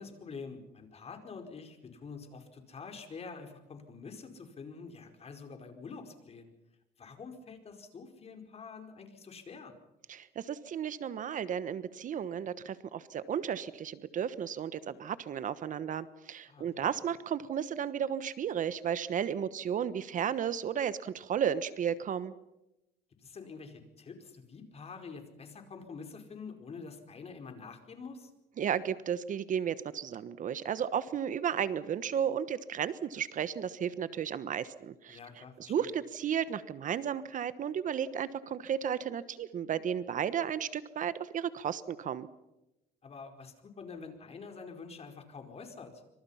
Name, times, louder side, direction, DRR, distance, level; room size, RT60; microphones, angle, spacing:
voice 1, 0.0-6.5 7.0-9.7 16.5-16.9 23.2-28.3 35.1-35.9 43.0-46.0, left 5 dB, 35° left, 6 dB, 4.8 m, -47 dB
voice 2, 10.1-22.3 28.6-35.2 35.6-42.3, right 8 dB, 50° right, 14 dB, 1.2 m, -33 dB
27.0 x 25.5 x 5.8 m, 0.90 s
cardioid pair, 110°, 17 cm